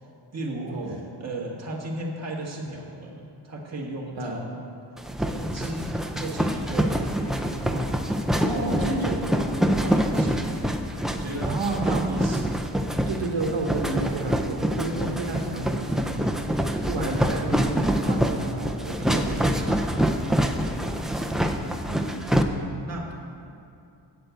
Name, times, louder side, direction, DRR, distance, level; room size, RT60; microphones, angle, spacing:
voice 1, 0.3-4.6 5.2-8.0 8.3-9.0 9.8-10.6 11.1-12.5 20.8-21.1 21.6-21.7 22.8-23.1, right 1 dB, 35° right, -3 dB, 1.7 m, -36 dB
sound 1, 5.0-22.4, equal, ahead, 0.4 m, -26 dB
voice 2, 8.3-9.6 11.4-12.1 13.1-20.0 20.6-20.9 21.9-22.2, right 2 dB, 75° right, 0 dB, 1.3 m, -31 dB
7.8 x 7.8 x 8.2 m, 2.6 s
wide cardioid pair, 165°, 45 cm